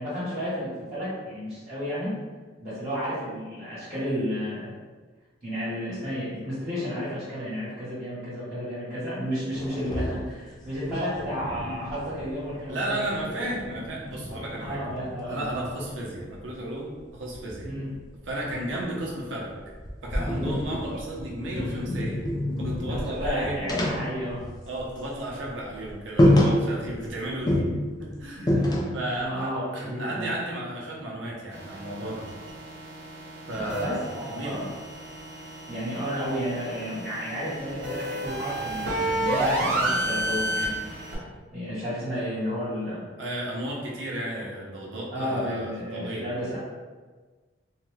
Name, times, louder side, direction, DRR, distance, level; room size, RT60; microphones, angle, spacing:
voice 1, 0.0-2.1 2.6-4.7 5.4-13.0 14.6-15.4 17.6-17.9 20.2-20.5 22.9-24.4 28.5-28.9 29.2-30.3 33.5-34.6 35.7-40.8 41.1-41.2 41.5-43.0 45.1-46.6, equal, 35° right, -12 dB, 1.2 m, -32 dB
sound 1, 9.5-12.7 13.0-15.9 17.3-19.3 19.7-25.0 25.3-25.5 25.8-25.9 26.2-27.1 27.5-29.2, left 1 dB, 20° left, 0.4 m, -28 dB
voice 2, 12.7-14.8 15.2-17.7 18.2-19.5 20.0-22.2 22.6-23.6 24.6-27.7 28.0-32.3 33.4-34.6 43.2-46.3, right 1 dB, 85° right, -3 dB, 0.7 m, -33 dB
sound 2, 31.5-41.1, right 1 dB, 65° right, 0.9 m, -31 dB
2.7 x 2.2 x 3.2 m, 1.4 s
head